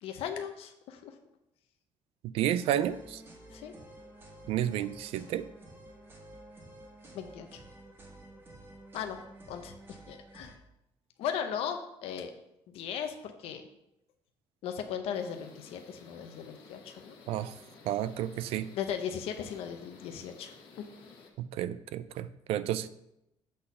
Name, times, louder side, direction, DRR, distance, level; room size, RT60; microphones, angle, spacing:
voice 1, 0.0-1.2 3.5-3.7 7.1-7.6 8.9-9.2 9.5-10.5 11.2-12.3 12.7-13.6 14.6-17.2 18.7-20.9, left 8 dB, 85° left, 6 dB, 0.7 m, -37 dB
voice 2, 2.3-3.2 4.5-5.5 17.3-17.5 17.9-18.7 21.4-22.9, right 11 dB, 85° right, 14 dB, 0.4 m, -31 dB
sound 1, 2.6-10.6, right 1 dB, 20° right, 1.3 m, -51 dB
sound 2, 15.1-21.3, left 4 dB, 65° left, 1.3 m, -54 dB
7.7 x 4.2 x 5.4 m, 0.85 s
cardioid pair, 175°, 10 cm